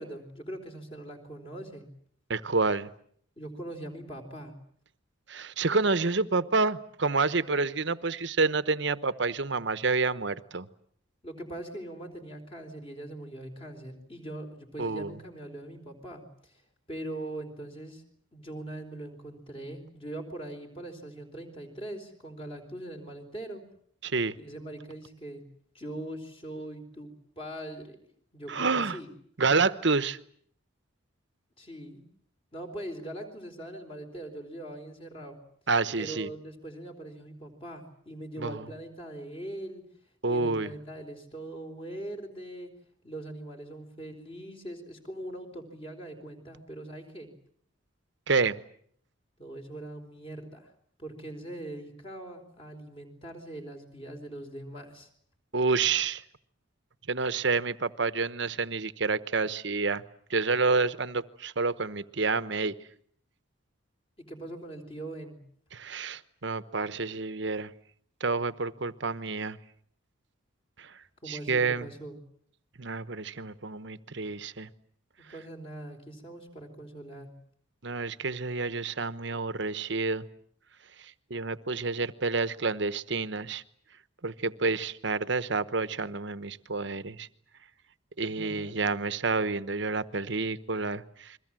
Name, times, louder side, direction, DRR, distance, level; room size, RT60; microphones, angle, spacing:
voice 1, 0.0-1.9 3.4-4.5 7.5-7.6 11.2-16.6 16.9-18.0 18.3-23.6 24.4-25.4 25.7-27.1 27.4-28.0 28.3-29.1 31.6-32.0 32.5-35.4 36.0-39.8 40.2-42.7 43.0-47.3 49.4-50.7 51.0-55.1 64.2-65.4 71.2-72.2 75.2-77.3 88.2-88.8, right 1 dB, 25° left, 4 dB, 4.2 m, -41 dB
voice 2, 2.3-2.9 5.3-10.7 14.8-15.2 24.0-24.3 28.5-29.0 29.4-30.2 35.7-36.3 38.4-38.6 40.2-40.7 48.3-48.6 55.5-56.2 57.1-60.0 60.3-62.7 65.7-67.7 68.2-69.6 70.8-70.9 71.3-71.9 72.8-74.7 77.8-80.2 81.3-83.6 84.2-87.3 88.2-91.4, right 4 dB, 55° right, 13 dB, 1.0 m, -29 dB
29.5 x 22.5 x 7.6 m, 0.63 s
head